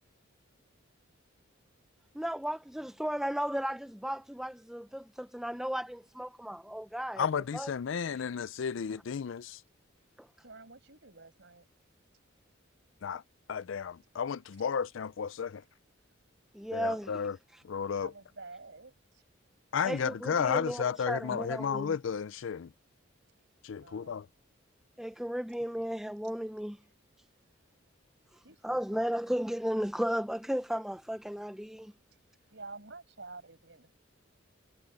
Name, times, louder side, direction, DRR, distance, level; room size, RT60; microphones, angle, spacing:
voice 1, 2.1-7.3 7.5-7.7 10.2-10.3 16.5-17.1 19.8-21.9 25.0-26.8 28.6-31.9, equal, ahead, 0.5 m, -34 dB
voice 2, 7.2-9.6 13.0-13.2 13.5-15.6 16.7-17.4 17.6-18.1 19.7-22.7 23.6-24.3, left 6 dB, 70° left, 0.4 m, -33 dB
voice 3, 10.4-11.6 16.8-17.1 18.0-19.2 23.8-24.2 28.4-29.0 32.5-34.0, right 3 dB, 60° right, 6.6 m, -50 dB
head